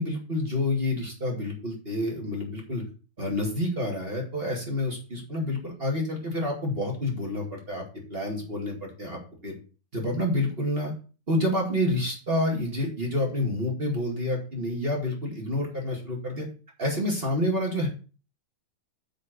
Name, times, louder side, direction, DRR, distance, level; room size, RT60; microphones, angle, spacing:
voice 1, 0.0-2.8 3.2-7.8 8.1-9.5 9.9-10.9 11.3-16.5 16.8-17.9, left 1 dB, 20° right, 0 dB, 1.7 m, -28 dB
6.6 x 5.1 x 6.6 m, 0.35 s
omnidirectional pair, 3.8 m